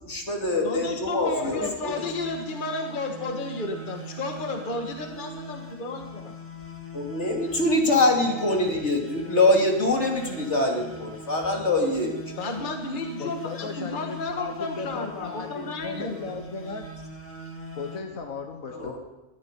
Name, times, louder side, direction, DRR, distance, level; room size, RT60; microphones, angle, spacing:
voice 1, 0.0-1.9 6.9-12.1 18.7-19.0, left 2 dB, 50° left, 0 dB, 3.1 m, -24 dB
voice 2, 0.6-6.3 12.4-16.3, left 3 dB, 35° left, 3 dB, 1.6 m, -32 dB
voice 3, 1.4-1.7 13.2-17.0 17.8-19.0, left 4 dB, 75° left, 4 dB, 1.6 m, -36 dB
sound 1, 1.9-18.0, right 2 dB, 10° left, 2.2 m, -41 dB
19.5 x 13.5 x 5.4 m, 1.0 s
omnidirectional pair, 1.5 m